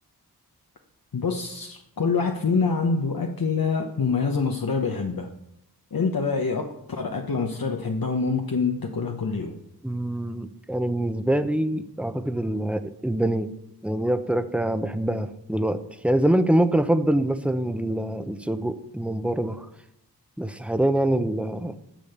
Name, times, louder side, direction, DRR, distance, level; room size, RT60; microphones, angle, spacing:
voice 1, 1.1-5.3 5.9-9.6, left 4 dB, 60° left, 3 dB, 1.1 m, -26 dB
voice 2, 9.8-13.5 13.8-19.7 20.4-21.7, right 1 dB, 5° right, 10 dB, 0.9 m, -25 dB
10.5 x 6.3 x 6.9 m, 0.78 s
cardioid pair, 40°, 39 cm